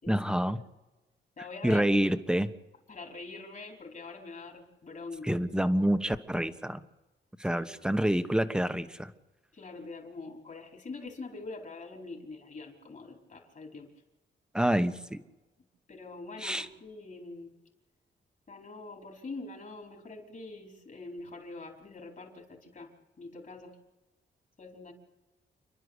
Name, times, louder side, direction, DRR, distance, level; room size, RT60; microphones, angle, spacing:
voice 1, 0.1-0.6 1.6-2.5 5.2-6.8 7.4-9.1 14.5-15.2 16.4-16.7, right 1 dB, 5° right, 10 dB, 1.3 m, -27 dB
voice 2, 1.4-1.8 2.9-5.4 7.5-7.7 9.5-13.9 15.9-17.5 18.5-22.9 23.2-23.8 24.6-24.9, left 3 dB, 45° left, 1 dB, 4.5 m, -44 dB
29.0 x 11.0 x 8.2 m, 1.1 s
cardioid pair, 85°, 19 cm